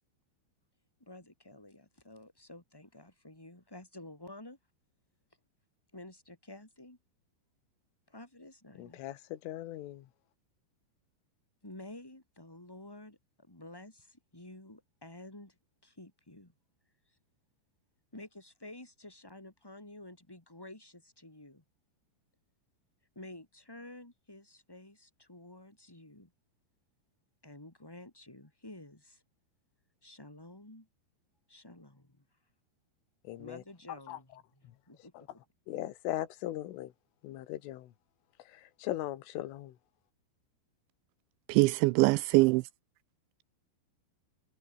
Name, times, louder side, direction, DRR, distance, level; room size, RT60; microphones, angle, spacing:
voice 1, 1.0-4.6 5.9-7.0 8.1-9.0 11.6-16.5 17.1-17.2 18.1-21.6 23.1-26.3 27.4-29.2 30.0-30.9 31.5-32.4 33.4-35.3, left 1 dB, 5° left, 2.7 m, -51 dB
voice 2, 8.8-10.1 33.3-33.6 34.1-34.2 35.2-35.3 35.7-36.9 37.2-37.9 38.5-39.8, left 14 dB, 90° left, 4.1 m, -39 dB
voice 3, 41.5-42.6, right 23 dB, 85° right, 2.7 m, -23 dB
omnidirectional pair, 5.5 m